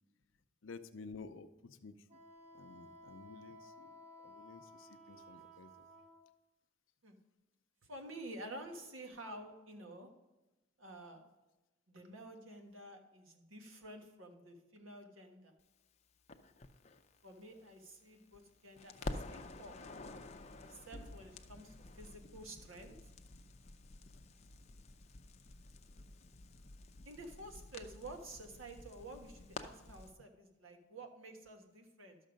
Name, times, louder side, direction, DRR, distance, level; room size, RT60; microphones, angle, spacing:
voice 1, 0.6-2.2 2.5-4.0 4.2-5.9, left 4 dB, 75° left, 11 dB, 0.6 m, -52 dB
Wind instrument woodwind instrument, 2.1-6.2, equal, 35° right, 1.2 m, -56 dB
voice 2, 7.8-10.1 10.8-11.2 11.9-15.5 17.2-19.8 20.6-22.9 27.0-32.2, right 1 dB, 85° right, 4 dB, 1.4 m, -51 dB
Crackle, 16.3-18.4 18.8-30.1, left 2 dB, 35° left, 0.5 m, -50 dB
12.0 x 6.5 x 5.2 m, 1.1 s
head